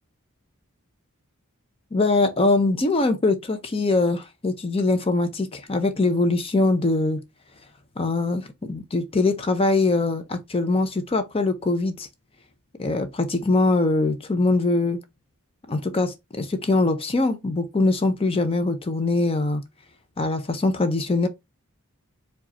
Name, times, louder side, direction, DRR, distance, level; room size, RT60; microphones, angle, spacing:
voice 1, 1.9-7.2 8.0-12.1 12.8-15.0 15.7-19.6 20.2-21.3, left 2 dB, 25° left, 0.5 m, -22 dB
4.8 x 2.3 x 4.1 m
head